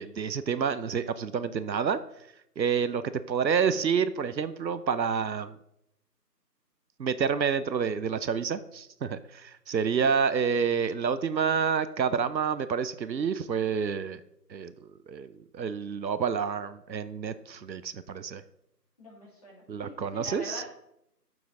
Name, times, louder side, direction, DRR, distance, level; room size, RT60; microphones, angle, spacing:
voice 1, 0.0-2.0 2.6-3.0 3.3-5.6 7.0-14.2 14.5-18.4 19.7-20.6, right 6 dB, 90° right, 14 dB, 0.7 m, -28 dB
voice 2, 19.0-20.6, left 1 dB, 20° left, -7 dB, 2.3 m, -44 dB
6.9 x 6.1 x 3.8 m, 0.80 s
figure-of-eight pair, 165°, 50 cm